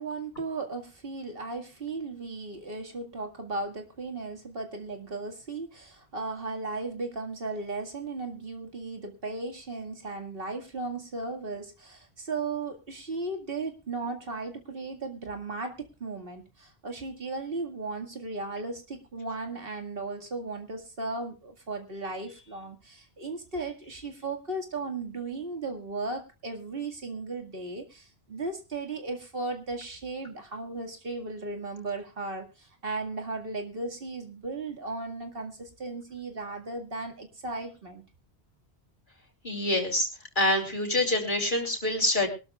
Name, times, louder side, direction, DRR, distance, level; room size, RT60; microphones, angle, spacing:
voice 1, 0.0-38.0, right 3 dB, 60° right, 4 dB, 2.2 m, -36 dB
voice 2, 39.4-40.1 40.4-42.3, left 1 dB, 50° left, 1 dB, 3.7 m, -26 dB
23.0 x 12.5 x 2.4 m, 0.30 s
omnidirectional pair, 1.1 m